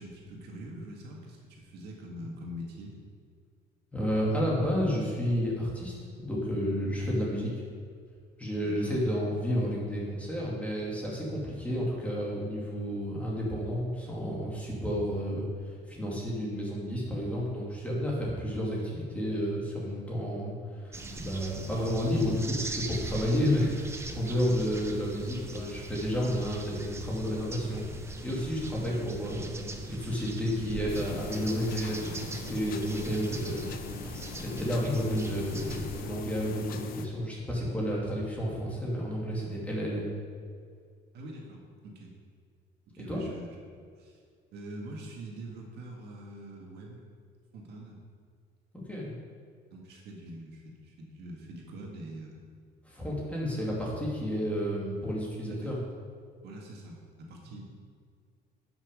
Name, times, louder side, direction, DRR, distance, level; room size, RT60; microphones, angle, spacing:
voice 1, 0.0-3.0 8.6-9.0 41.1-42.1 42.9-43.6 44.0-44.2 44.5-47.0 47.5-48.0 49.7-52.4 55.5-55.7 56.4-57.6, right 1 dB, 65° right, -1 dB, 1.9 m, -44 dB
voice 2, 3.9-7.5 8.4-27.8 28.2-29.5 29.9-33.8 34.3-40.1 43.1-43.2 48.9-49.1 52.8-55.8, equal, 5° left, -5 dB, 2.3 m, -31 dB
sound 1, 20.9-36.0, right 2 dB, 15° right, 0.7 m, -41 dB
sound 2, 30.9-37.1, left 7 dB, 55° left, 0.7 m, -42 dB
11.5 x 6.2 x 5.1 m, 2.1 s
cardioid pair, 150°, 18 cm